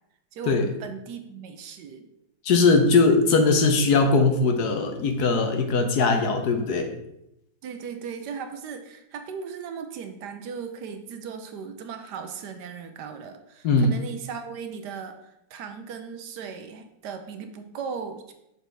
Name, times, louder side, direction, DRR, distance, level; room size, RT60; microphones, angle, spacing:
voice 1, 0.3-2.1 5.7-6.3 7.6-18.3, right 6 dB, 70° right, 7 dB, 1.2 m, -37 dB
voice 2, 2.4-6.9 13.6-13.9, left 3 dB, 65° left, 5 dB, 1.2 m, -20 dB
6.8 x 4.3 x 4.6 m, 0.84 s
omnidirectional pair, 2.0 m